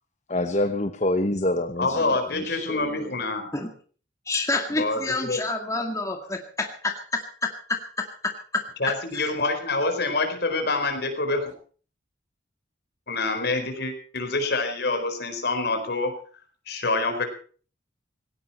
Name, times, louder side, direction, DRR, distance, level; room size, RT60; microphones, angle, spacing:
voice 1, 0.3-3.1, left 1 dB, 35° left, 8 dB, 1.1 m, -27 dB
voice 2, 1.8-3.5 4.7-5.4 8.8-11.5 13.1-16.2 16.7-17.3, left 3 dB, 55° left, 6 dB, 4.5 m, -26 dB
voice 3, 4.3-8.6, left 3 dB, 15° left, 3 dB, 2.0 m, -28 dB
18.0 x 18.0 x 4.4 m, 0.42 s
head